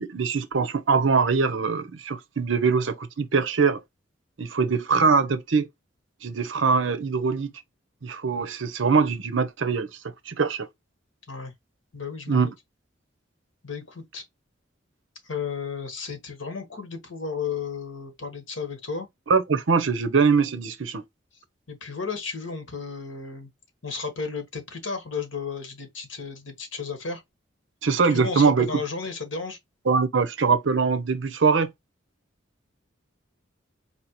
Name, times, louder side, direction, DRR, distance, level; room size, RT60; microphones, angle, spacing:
voice 1, 0.0-3.8 4.4-5.7 6.2-7.5 8.0-9.9 10.3-10.7 12.3-12.5 19.3-21.0 27.8-28.7 29.9-31.7, right 5 dB, 75° right, 0.6 m, -22 dB
voice 2, 11.9-12.5 13.6-14.2 15.2-19.1 21.7-23.5 23.8-27.2 28.1-29.6, left 5 dB, 80° left, 1.3 m, -33 dB
4.3 x 2.8 x 2.9 m
head